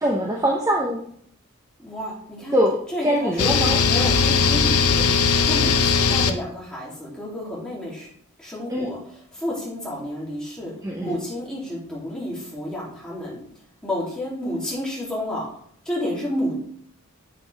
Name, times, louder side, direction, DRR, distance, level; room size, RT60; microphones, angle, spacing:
voice 1, 0.0-1.0 2.5-3.8 8.7-8.9 10.8-11.2, equal, 15° right, -1 dB, 0.8 m, -23 dB
voice 2, 1.8-2.6 2.9-3.5 3.9-5.1 5.3-8.1 8.4-10.7 11.0-13.4 13.8-15.5 15.8-16.6, left 1 dB, 5° left, -6 dB, 2.8 m, -30 dB
sound 1, 3.4-6.3, left 5 dB, 80° left, 0.7 m, -19 dB
7.6 x 7.4 x 3.4 m, 0.64 s
head